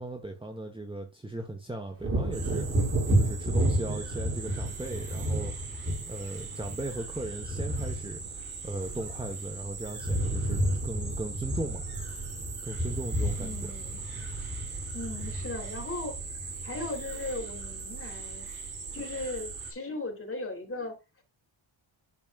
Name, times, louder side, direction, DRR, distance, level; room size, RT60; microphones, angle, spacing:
voice 1, 0.0-2.7 3.1-5.5 6.1-8.2 8.6-11.8 12.6-13.7, right 2 dB, 10° right, 1.2 m, -37 dB
Wind / Thunder, 2.0-9.6 9.8-17.1 17.5-17.7, right 1 dB, 30° right, 5.3 m, -31 dB
sound 1, 2.3-19.7, right 5 dB, 80° right, 4.0 m, -40 dB
voice 2, 13.4-14.0 14.9-18.5 18.9-21.2, left 2 dB, 25° left, 3.6 m, -38 dB
11.0 x 6.2 x 2.5 m
wide cardioid pair, 140°, 49 cm